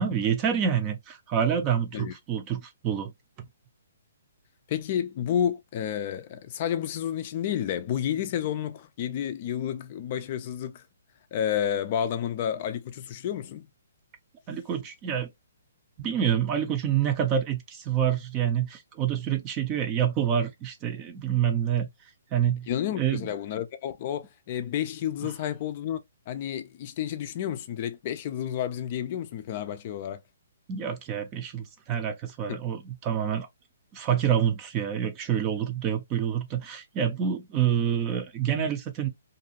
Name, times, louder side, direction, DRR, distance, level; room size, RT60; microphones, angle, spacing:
voice 1, 0.0-3.1 14.5-15.3 16.0-21.9 22.3-22.7 22.9-23.3 30.7-33.5 33.9-39.1, right 9 dB, 25° right, 0.5 m, -27 dB
voice 2, 4.7-10.8 11.3-13.7 22.7-26.0 26.3-30.2 32.5-32.6, left 9 dB, 40° left, 0.4 m, -30 dB
2.6 x 2.3 x 2.8 m
hypercardioid pair, 150°, 0 cm